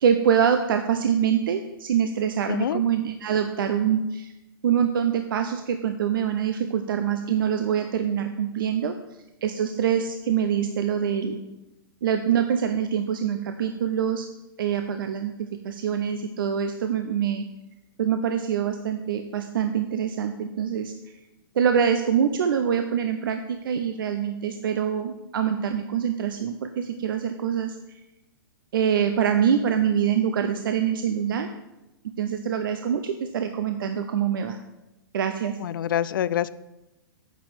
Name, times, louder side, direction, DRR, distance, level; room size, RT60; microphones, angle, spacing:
voice 1, 0.0-4.3 4.6-8.9 9.4-11.4 12.0-14.3 14.6-15.3 15.6-17.4 18.0-20.9 21.5-27.8 28.7-31.5 32.2-34.6 35.1-35.5, right 8 dB, 65° right, 7 dB, 0.8 m, -25 dB
voice 2, 2.5-2.8 35.6-36.5, left 11 dB, 60° left, 18 dB, 0.5 m, -26 dB
9.4 x 6.0 x 7.7 m, 0.96 s
hypercardioid pair, 115°, 12 cm